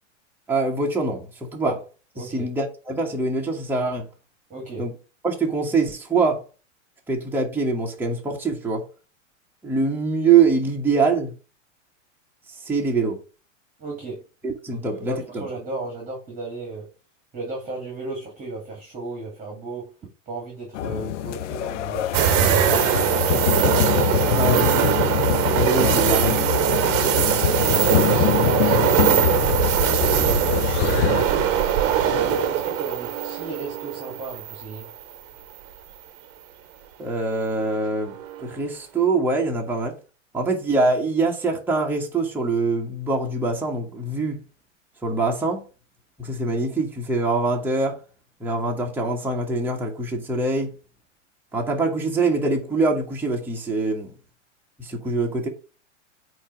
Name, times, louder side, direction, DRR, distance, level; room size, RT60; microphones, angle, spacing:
voice 1, 0.5-1.8 2.2-4.1 4.8-4.9 5.2-6.4 7.1-8.8 9.6-11.3 12.6-13.2 14.4-15.4 24.3-24.9 25.6-26.5 37.0-39.9 40.3-44.4 45.0-45.6 46.2-48.0 48.4-50.7 51.5-54.1 54.8-55.5, right 3 dB, 5° right, 1.4 m, -24 dB
voice 2, 2.2-2.5 4.5-4.9 13.8-14.2 14.7-16.9 17.3-19.9 20.3-23.4 24.4-24.6 25.8-26.0 27.2-31.5 32.0-34.9, right 3 dB, 20° right, 2.4 m, -34 dB
sound 1, 20.7-31.2, left 12 dB, 65° left, 0.6 m, -24 dB
sound 2, 22.1-35.2 35.6-35.7 38.1-38.5, right 10 dB, 40° right, 1.0 m, -21 dB
8.4 x 3.1 x 4.6 m
hypercardioid pair, 120°, 38 cm